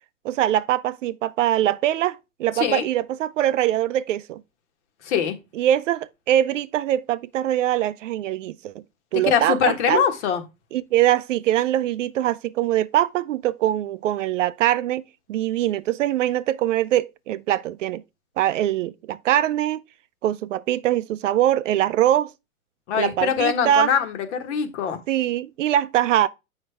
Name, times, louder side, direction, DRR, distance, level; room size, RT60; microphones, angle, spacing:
voice 1, 0.2-4.4 5.5-8.8 9.1-10.0 10.7-15.0 15.3-18.0 18.4-19.8 20.2-22.3 22.9-23.9 25.1-26.3, right 12 dB, 55° right, 0.6 m, -22 dB
voice 2, 5.0-5.4 9.3-10.4 22.9-25.0, left 7 dB, 50° left, 1.6 m, -23 dB
7.7 x 5.4 x 3.4 m
hypercardioid pair, 135°, 44 cm